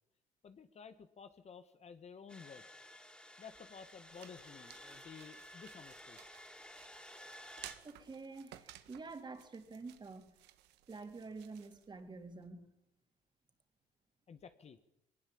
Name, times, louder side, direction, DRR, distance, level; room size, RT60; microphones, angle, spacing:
voice 1, 0.4-2.6 3.4-6.2 14.3-14.8, left 6 dB, 40° left, 10 dB, 1.6 m, -53 dB
sound 1, 2.3-7.8, left 1 dB, 5° left, 4.0 m, -54 dB
sound 2, 3.5-12.5, right 14 dB, 90° right, 1.7 m, -58 dB
voice 2, 7.8-10.4 10.9-12.7, right 3 dB, 25° right, 6 dB, 3.6 m, -48 dB
22.0 x 19.5 x 8.7 m, 0.85 s
cardioid pair, 110°, 17 cm